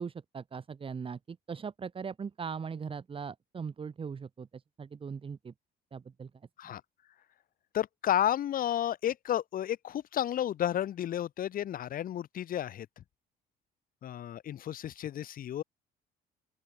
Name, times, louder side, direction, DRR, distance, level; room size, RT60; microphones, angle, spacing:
voice 1, 0.0-5.5 5.9-6.3, right 6 dB, 30° right, 2.8 m, -40 dB
voice 2, 7.7-12.9 14.0-15.6, left 11 dB, 55° left, 2.2 m, -32 dB
open air
cardioid pair, 110°, 17 cm